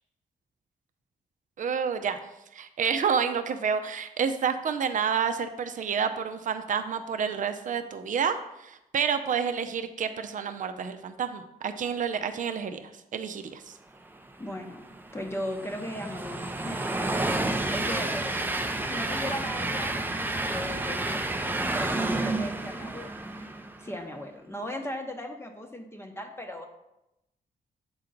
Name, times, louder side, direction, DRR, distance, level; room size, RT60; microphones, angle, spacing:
voice 1, 1.6-2.2 2.5-13.8, right 7 dB, 55° right, 8 dB, 0.6 m, -29 dB
voice 2, 14.4-14.8 15.1-18.5 18.8-23.5 23.8-26.7, left 1 dB, 15° left, 3 dB, 0.8 m, -38 dB
Train, 14.5-23.9, right 2 dB, 10° right, 0.5 m, -30 dB
7.7 x 4.4 x 3.9 m, 0.88 s
cardioid pair, 90°, 16 cm